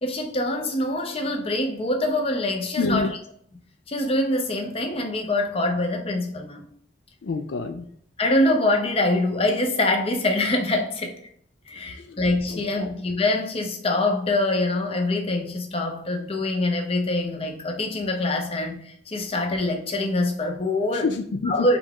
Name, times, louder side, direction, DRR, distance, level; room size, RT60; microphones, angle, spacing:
voice 1, 0.0-3.2 3.9-6.6 8.2-11.1 11.7-21.1 21.5-21.8, left 2 dB, 30° left, 0.7 m, -24 dB
voice 2, 2.8-3.1 7.2-7.9 12.0-12.2 12.5-12.9 20.9-21.7, left 4 dB, 75° left, 0.4 m, -27 dB
5.1 x 2.4 x 3.6 m
head